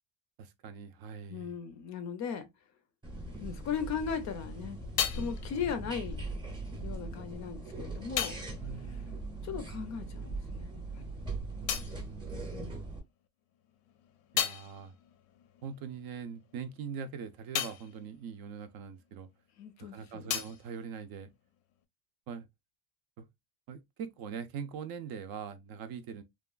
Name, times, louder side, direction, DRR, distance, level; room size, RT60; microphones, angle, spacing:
voice 1, 0.4-1.6 8.6-9.2 11.6-12.4 14.3-14.9 15.6-19.3 19.8-21.3 22.3-22.5 23.2-23.3 23.7-26.2, right 6 dB, 55° right, 0.5 m, -42 dB
voice 2, 1.3-2.4 3.4-4.8 5.1-6.2 6.8-8.4 9.4-11.1 12.5-12.8 19.6-20.3, left 7 dB, 40° left, 0.4 m, -37 dB
sound 1, 3.0-13.0, right 2 dB, 10° right, 0.6 m, -40 dB
sound 2, 4.3-10.2 10.4-13.1 13.5-19.5 19.8-21.8, left 10 dB, 85° left, 0.6 m, -40 dB
2.9 x 2.3 x 2.2 m
cardioid pair, 140°, 45 cm